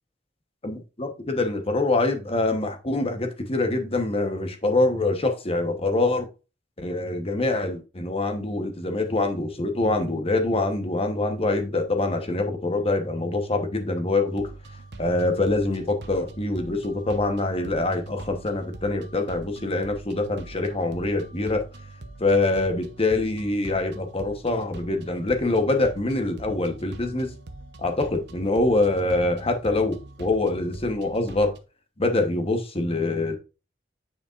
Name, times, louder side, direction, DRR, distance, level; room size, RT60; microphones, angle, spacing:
voice 1, 0.6-6.3 6.8-14.5 15.0-21.6 22.2-27.3 27.8-31.5 32.0-33.4, left 2 dB, 30° left, 1.1 m, -25 dB
sound 1, 14.3-31.6, right 2 dB, 65° right, 0.9 m, -43 dB
9.2 x 5.1 x 2.5 m
head